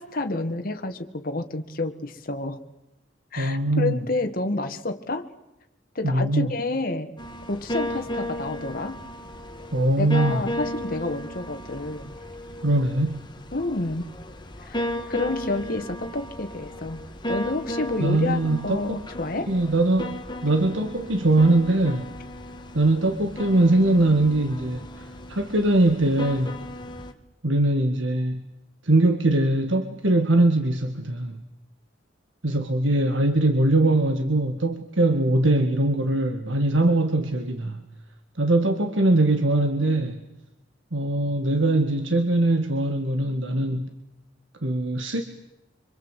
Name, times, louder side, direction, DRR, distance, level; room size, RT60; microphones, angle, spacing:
voice 1, 0.0-2.6 3.3-5.3 6.0-7.1 7.5-9.0 10.0-12.1 13.5-14.1 14.6-17.0 17.3-19.5, left 2 dB, 50° left, 5 dB, 1.8 m, -29 dB
voice 2, 3.4-4.0 6.0-6.5 9.7-10.4 12.6-13.2 18.0-19.0 19.5-22.1 22.7-26.6 27.4-28.4 28.8-31.4 32.4-37.8 38.4-40.2 40.9-43.9 44.6-45.2, right 2 dB, 75° right, 6 dB, 1.9 m, -22 dB
sound 1, 7.2-27.1, left 1 dB, 25° left, 2.1 m, -35 dB
26.0 x 25.5 x 8.3 m, 0.91 s
head